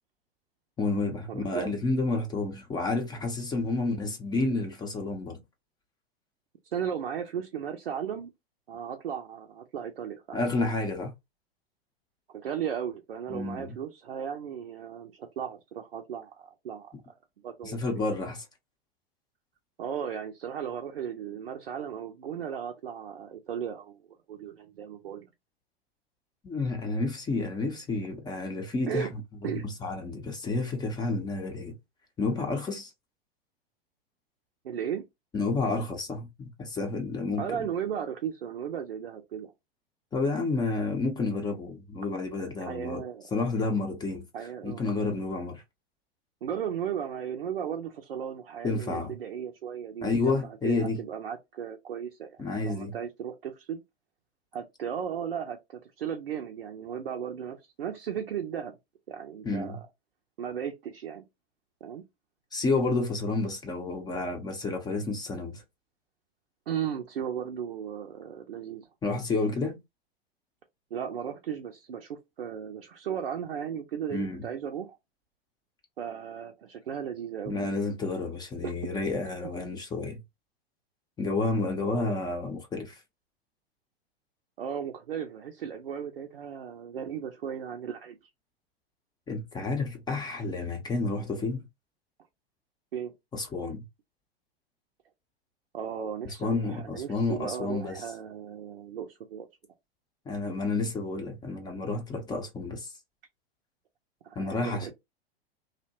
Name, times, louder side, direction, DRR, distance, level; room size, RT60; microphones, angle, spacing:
voice 1, 0.8-5.4 10.3-11.1 13.3-13.8 17.6-18.4 26.4-31.8 32.2-32.9 35.3-37.7 40.1-43.0 43.3-44.3 44.6-45.6 48.6-49.1 50.0-51.0 52.4-52.9 59.4-59.8 62.5-65.6 69.0-69.8 74.1-74.5 77.5-80.2 81.2-83.0 89.3-91.6 93.3-93.8 96.2-98.0 100.3-102.9 104.4-104.9, left 3 dB, 15° left, 0.5 m, -30 dB
voice 2, 1.3-1.7 6.7-8.3 8.7-10.4 12.3-16.9 17.4-17.8 19.8-24.0 24.3-25.3 28.9-29.1 29.4-29.7 34.6-35.1 37.4-39.5 42.6-43.3 44.3-44.8 46.4-52.4 52.6-53.8 54.5-58.7 59.1-59.8 60.4-61.2 61.8-62.0 66.7-68.9 70.9-75.0 76.0-77.6 78.6-79.1 81.8-82.2 84.6-88.2 92.9-93.1 95.7-99.5 104.2-104.9, right 8 dB, 75° right, 0.5 m, -36 dB
2.7 x 2.1 x 2.7 m
figure-of-eight pair, 90°, 30 cm